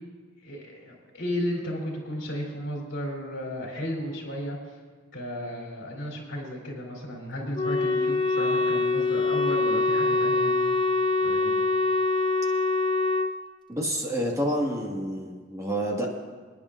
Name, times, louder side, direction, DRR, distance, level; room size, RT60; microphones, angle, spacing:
voice 1, 0.4-4.6 5.1-10.5 11.2-11.5, equal, 65° left, -2 dB, 3.2 m, -34 dB
Wind instrument woodwind instrument, 7.5-13.3, left 3 dB, 25° left, 0.6 m, -24 dB
voice 2, 13.7-16.1, equal, 15° right, -1 dB, 1.6 m, -28 dB
28.5 x 10.0 x 2.5 m, 1.5 s
head